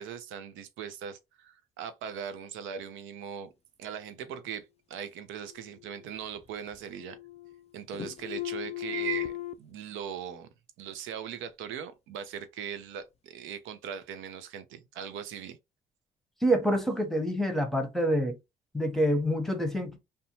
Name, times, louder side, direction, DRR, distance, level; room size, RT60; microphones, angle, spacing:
voice 1, 0.0-3.5 3.8-7.2 7.7-10.5 10.8-15.6, right 8 dB, 80° right, 0.5 m, -39 dB
sound 1, 5.5-6.4 6.7-7.7 7.9-9.5, left 15 dB, 30° left, 0.3 m, -37 dB
voice 2, 16.4-18.4 18.7-20.0, equal, ahead, 0.9 m, -27 dB
2.6 x 2.2 x 2.8 m
supercardioid pair, 65°, 20 cm